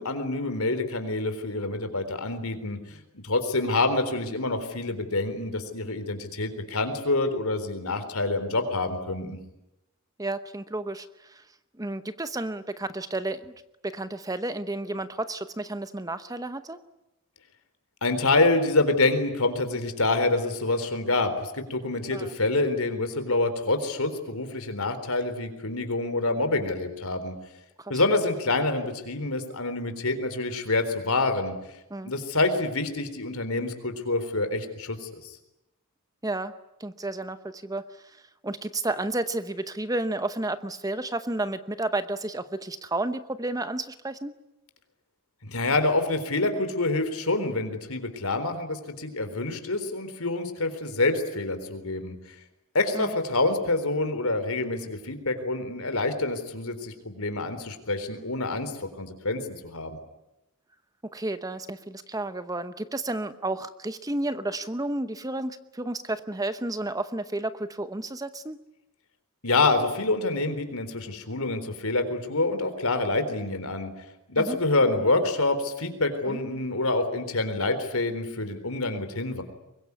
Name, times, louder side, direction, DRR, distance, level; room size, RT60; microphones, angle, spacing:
voice 1, 0.0-9.4 18.0-27.3 27.9-31.5 32.0-35.4 45.4-52.2 52.7-60.0 69.4-73.9 74.3-79.4, left 2 dB, 75° left, 9 dB, 4.0 m, -27 dB
voice 2, 10.2-11.4 11.8-13.5 13.8-16.8 22.1-22.3 27.8-27.9 31.9-32.1 36.2-36.5 36.8-37.9 38.4-44.3 52.9-53.1 61.1-68.6 74.4-74.6 76.3-76.4, right 2 dB, 15° right, 12 dB, 0.9 m, -31 dB
24.0 x 22.0 x 9.7 m, 0.91 s
head